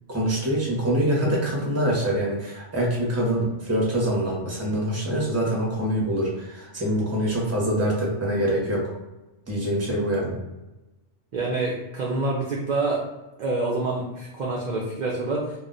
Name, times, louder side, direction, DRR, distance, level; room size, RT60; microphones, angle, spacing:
voice 1, 0.1-8.9 9.5-10.4, right 1 dB, 20° right, -3 dB, 0.5 m, -25 dB
voice 2, 11.3-13.0 13.4-15.6, right 2 dB, 65° right, -2 dB, 0.4 m, -27 dB
2.3 x 2.1 x 3.7 m, 1.0 s
omnidirectional pair, 1.2 m